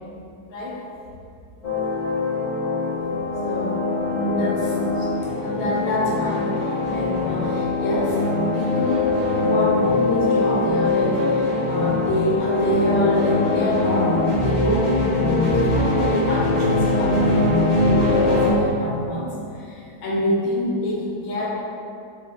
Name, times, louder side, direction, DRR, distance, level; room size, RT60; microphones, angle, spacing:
sound 1, 1.6-18.5, left 2 dB, 50° left, 0.4 m, -22 dB
voice 1, 3.4-3.8 4.1-5.1 5.4-8.2 8.5-9.1 9.4-19.3 19.7-21.5, left 1 dB, 65° left, -3 dB, 1.0 m, -26 dB
5.0 x 3.3 x 2.3 m, 2.6 s
omnidirectional pair, 1.8 m